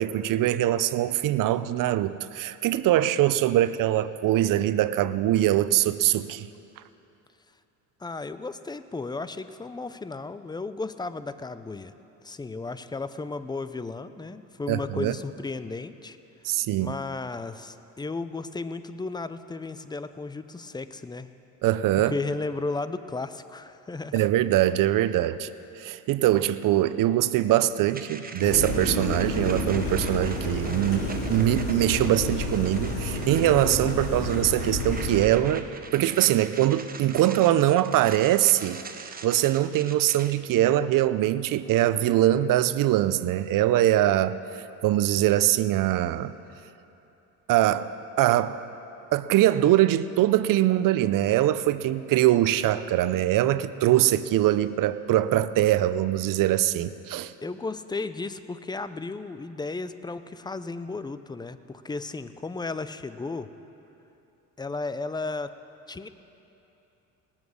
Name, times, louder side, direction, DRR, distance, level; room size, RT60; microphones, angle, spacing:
voice 1, 0.0-6.5 14.7-15.1 16.4-16.9 21.6-22.1 24.1-25.5 25.8-35.7 35.9-44.4 44.8-46.3 47.5-47.9 48.2-48.6 49.1-57.3, right 13 dB, 60° right, 15 dB, 0.6 m, -23 dB
voice 2, 8.0-11.9 12.2-16.2 16.8-21.3 22.1-24.3 57.4-63.5 64.6-65.5 65.9-66.1, left 3 dB, 10° left, 12 dB, 0.4 m, -34 dB
sound 1, 27.9-40.3, right 4 dB, 25° right, 0.9 m, -42 dB
sound 2, 28.4-35.2, left 2 dB, 90° left, 3.5 m, -30 dB
19.0 x 7.3 x 6.3 m, 2.9 s
supercardioid pair, 85°, 38 cm